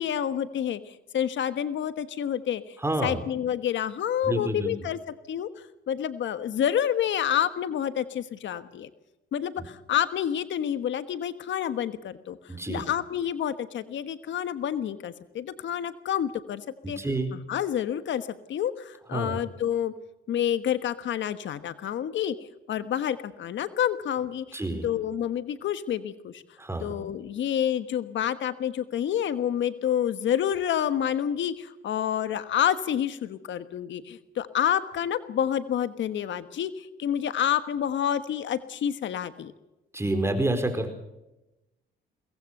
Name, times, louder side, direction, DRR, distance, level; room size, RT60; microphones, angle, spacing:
voice 1, 0.0-2.8 3.0-5.0 5.3-5.5 5.9-8.9 9.3-16.6 16.9-17.0 17.3-19.9 20.3-22.4 22.7-26.4 26.8-39.5, left 9 dB, 70° left, 12 dB, 1.4 m, -28 dB
voice 2, 2.8-3.2 4.3-4.7 12.5-12.8 16.8-17.3 19.1-19.4 24.5-24.9 26.6-27.0 39.9-40.9, right 1 dB, 15° right, 8 dB, 4.6 m, -28 dB
23.0 x 19.0 x 6.7 m, 0.95 s
cardioid pair, 90°, 20 cm